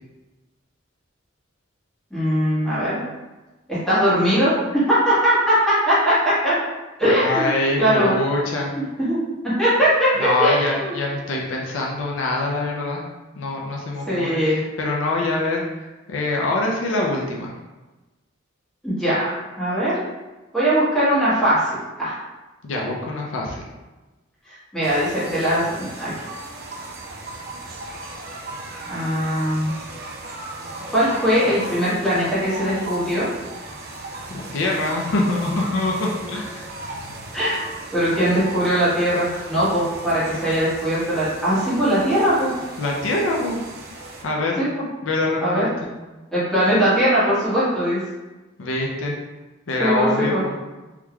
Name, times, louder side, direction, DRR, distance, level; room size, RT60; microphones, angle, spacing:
voice 1, 2.1-3.0 3.7-6.6 7.0-7.5 7.8-8.1 9.0-9.2 9.4-10.9 14.1-14.6 18.8-20.0 20.5-22.2 24.7-26.1 28.9-29.7 30.9-33.3 37.3-37.7 37.9-42.5 44.6-44.7 45.4-45.7 46.3-48.0 49.8-50.4, equal, 5° left, -11 dB, 1.3 m, -20 dB
voice 2, 7.0-8.7 10.1-13.0 13.4-17.5 22.6-23.6 34.3-36.7 42.8-43.6 44.2-44.6 45.0-45.7 48.6-49.1 49.7-50.6, left 2 dB, 75° left, -1 dB, 0.5 m, -24 dB
sound 1, 24.8-44.2, right 2 dB, 50° right, 0.4 m, -36 dB
3.6 x 3.0 x 2.3 m, 1.1 s
head